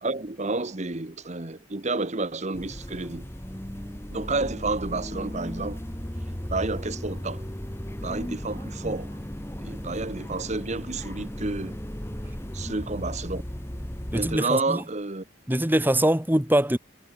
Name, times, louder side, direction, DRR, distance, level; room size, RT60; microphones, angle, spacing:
voice 1, 0.0-3.3 4.1-5.8 6.5-7.4 8.0-9.1 9.6-11.8 12.5-13.4 14.1-15.2, right 3 dB, 35° right, 1.1 m, -30 dB
sound 1, 2.5-14.4, equal, 10° left, 1.5 m, -36 dB
voice 2, 14.1-14.8 15.5-16.8, right 1 dB, 10° right, 1.7 m, -23 dB
head